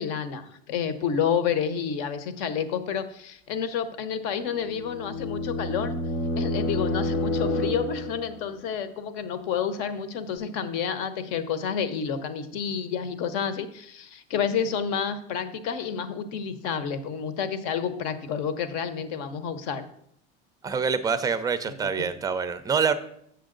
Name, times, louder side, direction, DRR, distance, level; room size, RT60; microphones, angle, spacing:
voice 1, 0.0-5.9 6.4-19.8, left 7 dB, 65° left, 11 dB, 0.9 m, -29 dB
sound 1, 4.5-8.4, left 1 dB, 85° left, 1.1 m, -29 dB
voice 2, 20.6-22.9, right 6 dB, 10° right, 12 dB, 0.4 m, -26 dB
7.1 x 7.0 x 3.8 m, 0.70 s
supercardioid pair, 120°, 33 cm